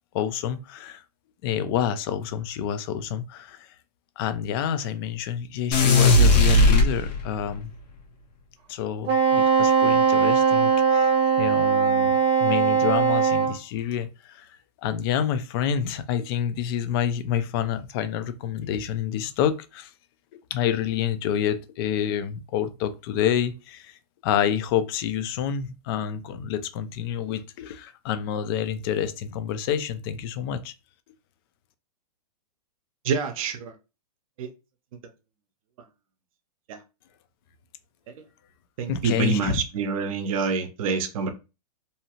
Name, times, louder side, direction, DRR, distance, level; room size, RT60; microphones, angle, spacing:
voice 1, 0.1-1.0 1.4-3.7 4.2-7.7 8.7-11.1 11.4-14.5 14.8-19.9 20.5-24.0 24.2-30.7 38.9-39.6, left 9 dB, 35° left, 0.4 m, -28 dB
sound 1, 5.7-7.5, left 2 dB, 85° left, 0.9 m, -17 dB
Wind instrument woodwind instrument, 9.0-13.5, right 6 dB, 25° right, 0.8 m, -20 dB
voice 2, 33.0-33.7 34.4-34.5 36.7-36.8 38.1-38.2 38.8-41.3, right 5 dB, 55° right, 0.6 m, -27 dB
2.7 x 2.3 x 2.8 m
hypercardioid pair, 140°, 21 cm